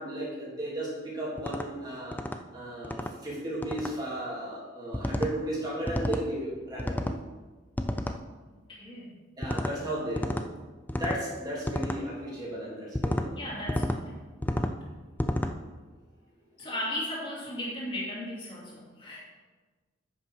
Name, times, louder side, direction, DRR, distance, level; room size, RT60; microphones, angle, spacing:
voice 1, 0.0-2.2 2.5-7.1 9.4-10.4 10.9-13.4 16.6-16.7, right 1 dB, 20° right, -6 dB, 3.2 m, -35 dB
sound 1, 1.4-1.7 2.1-2.4 2.8-3.1 3.6-3.9 4.9-5.3 5.9-6.3 6.8-7.2 7.8-8.2 9.4-9.7 10.2-10.5 10.9-11.2 11.7-12.0 12.9-13.3 13.7-14.0 14.4-14.8 15.2-15.5, left 1 dB, 10° left, 0.4 m, -30 dB
voice 2, 8.7-9.2 13.4-14.2 16.6-19.2, left 1 dB, 25° left, -6 dB, 2.6 m, -36 dB
9.5 x 6.0 x 6.0 m, 1.3 s
head